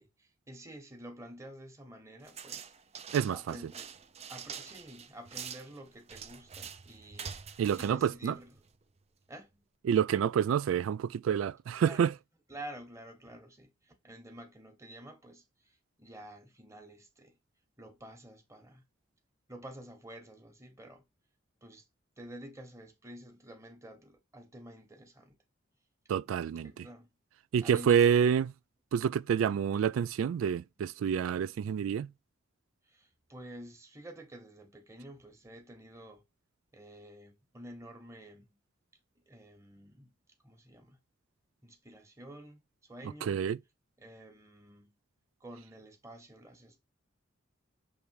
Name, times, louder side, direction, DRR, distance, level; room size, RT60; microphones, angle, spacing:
voice 1, 0.0-3.9 4.3-8.5 9.3-9.6 11.8-12.1 12.5-17.4 17.8-18.8 19.5-21.0 21.6-21.8 22.2-25.4 26.6-27.1 27.6-28.3 29.4-29.6 32.9-36.2 36.7-38.6 39.3-40.1 40.4-41.0 41.6-43.4 44.0-44.9 45.4-46.8, right 1 dB, 15° right, 1.3 m, -50 dB
sound 1, 2.3-8.8, right 7 dB, 30° right, 0.6 m, -46 dB
voice 2, 3.1-3.6 7.6-8.3 9.8-12.1 26.1-26.7 27.5-28.5 28.9-32.1 43.2-43.6, right 8 dB, 85° right, 0.3 m, -28 dB
6.9 x 3.3 x 4.7 m
head